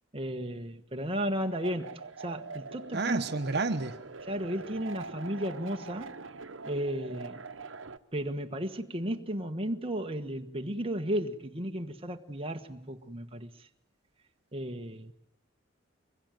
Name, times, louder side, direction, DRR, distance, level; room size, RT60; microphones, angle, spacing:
voice 1, 0.1-3.2 4.3-6.2 6.6-7.4 8.1-13.5 14.5-15.1, equal, 30° right, 1.4 m, -34 dB
sound 1, 1.3-8.0, right 4 dB, 90° right, 1.0 m, -44 dB
voice 2, 2.9-3.9, right 3 dB, 60° right, 1.2 m, -30 dB
25.0 x 22.0 x 9.2 m
head